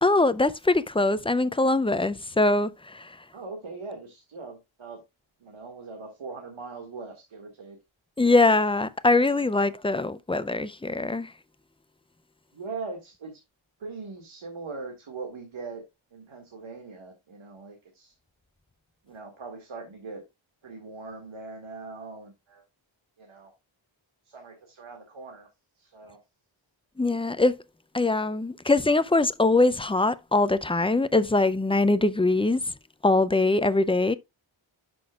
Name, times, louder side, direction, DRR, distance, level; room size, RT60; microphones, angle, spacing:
voice 1, 0.0-3.1 8.2-11.3 27.0-27.6 27.9-32.6 33.0-34.1, left 2 dB, 10° left, 0.4 m, -22 dB
voice 2, 3.3-5.0 5.4-7.8 9.6-9.7 12.5-13.4 13.8-15.8 16.1-18.1 19.0-20.2 20.6-22.6 23.2-23.5 24.2-25.5 25.8-26.2, right 4 dB, 75° right, 2.0 m, -41 dB
11.5 x 6.1 x 2.4 m
wide cardioid pair, 125°, 48 cm